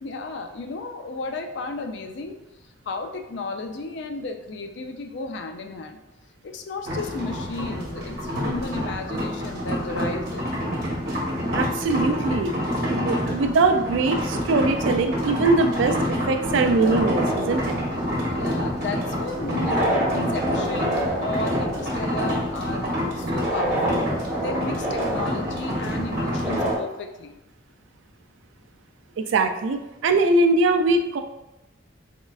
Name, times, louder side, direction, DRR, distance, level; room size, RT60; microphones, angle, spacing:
voice 1, 0.0-2.4 2.9-6.0 6.4-10.4 18.3-22.9 23.2-24.1 24.4-27.3, left 3 dB, 60° left, 6 dB, 0.4 m, -33 dB
sound 1, 6.9-26.7, equal, 55° right, 1.0 m, -27 dB
voice 2, 11.5-12.5 12.9-17.8 29.2-31.2, right 3 dB, 70° right, 6 dB, 0.3 m, -22 dB
sound 2, 16.8-26.8, right 1 dB, 10° right, 1.5 m, -29 dB
3.7 x 3.1 x 2.3 m, 0.97 s
head